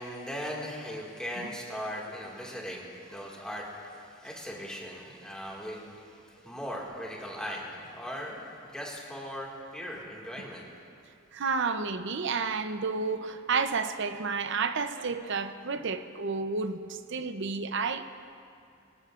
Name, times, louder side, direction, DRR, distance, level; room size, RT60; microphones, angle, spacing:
voice 1, 0.0-10.7, equal, 5° left, -3 dB, 1.9 m, -39 dB
voice 2, 11.3-18.2, right 4 dB, 60° right, 10 dB, 0.6 m, -31 dB
20.0 x 17.5 x 2.5 m, 2.4 s
head